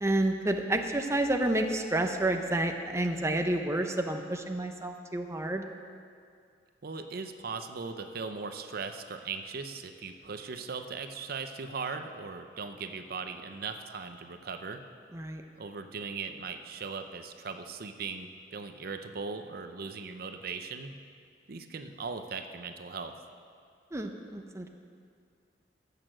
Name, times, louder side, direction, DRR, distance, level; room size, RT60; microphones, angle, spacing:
voice 1, 0.0-5.6 15.1-15.4 23.9-24.7, right 1 dB, 15° right, 4 dB, 0.6 m, -29 dB
voice 2, 6.8-14.8 15.6-20.9 21.5-23.1, right 5 dB, 60° right, 7 dB, 0.6 m, -39 dB
15.0 x 6.7 x 6.3 m, 2.3 s
head